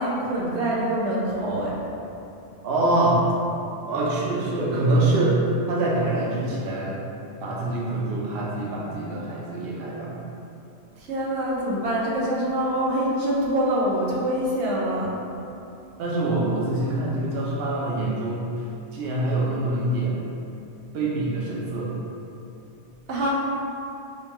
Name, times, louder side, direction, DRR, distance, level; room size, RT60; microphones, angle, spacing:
voice 1, 0.0-1.7 11.0-15.1 23.1-23.3, right 1 dB, 90° right, -5 dB, 1.1 m, -25 dB
voice 2, 2.6-3.2 3.9-5.4 5.7-7.0 7.4-10.2 16.0-18.5 18.9-20.1 20.9-21.9, right 2 dB, 70° right, -5 dB, 0.8 m, -25 dB
5.2 x 2.2 x 2.9 m, 2.7 s
omnidirectional pair, 1.1 m